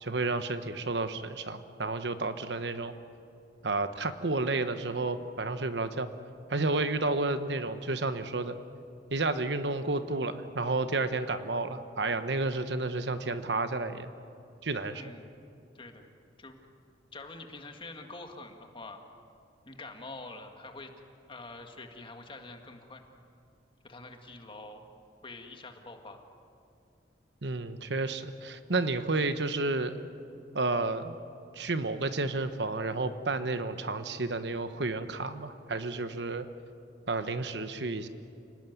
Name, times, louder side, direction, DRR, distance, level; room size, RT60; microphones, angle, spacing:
voice 1, 0.0-2.9 3.6-6.1 6.5-8.6 9.1-14.1 14.6-15.0 27.4-30.0 30.5-31.2 31.5-36.5 37.1-38.1, right 3 dB, 70° right, 10 dB, 1.2 m, -31 dB
voice 2, 14.9-15.3 15.7-16.1 16.4-16.6 17.1-19.0 19.7-20.9 21.3-23.0 23.8-24.8 25.2-26.2, left 2 dB, 30° left, 4 dB, 1.9 m, -46 dB
29.0 x 18.5 x 9.5 m, 2.6 s
head